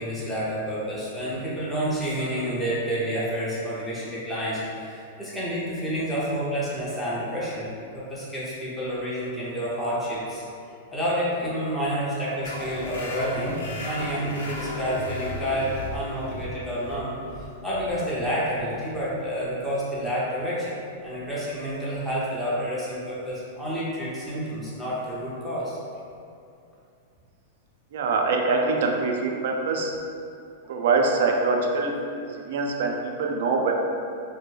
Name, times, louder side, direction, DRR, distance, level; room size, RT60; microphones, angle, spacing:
voice 1, 0.0-7.7 7.9-10.4 10.9-17.1 17.6-20.8 21.0-25.8, equal, 5° left, -9 dB, 0.7 m, -29 dB
sound 1, 12.4-19.6, left 2 dB, 75° left, 0.4 m, -36 dB
voice 2, 27.9-29.9 30.7-33.7, right 3 dB, 70° right, 2 dB, 0.3 m, -24 dB
2.1 x 2.1 x 3.1 m, 2.5 s
hypercardioid pair, 120°, 0 cm